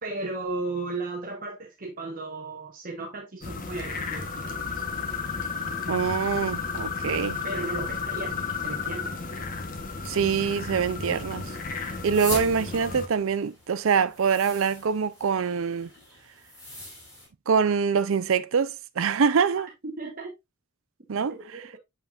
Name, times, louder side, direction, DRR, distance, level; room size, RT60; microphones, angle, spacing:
voice 1, 0.0-4.3 4.7-4.8 7.4-9.1 19.5-20.3 21.3-21.8, right 3 dB, 40° right, 1.1 m, -35 dB
sound 1, 3.4-13.1, left 5 dB, 40° left, 1.0 m, -33 dB
voice 2, 5.9-7.4 10.1-11.4 12.0-15.9 17.5-19.7 21.1-21.6, right 6 dB, 70° right, 0.5 m, -25 dB
sound 2, 11.9-17.3, left 1 dB, 15° left, 4.0 m, -40 dB
7.3 x 5.6 x 2.4 m
head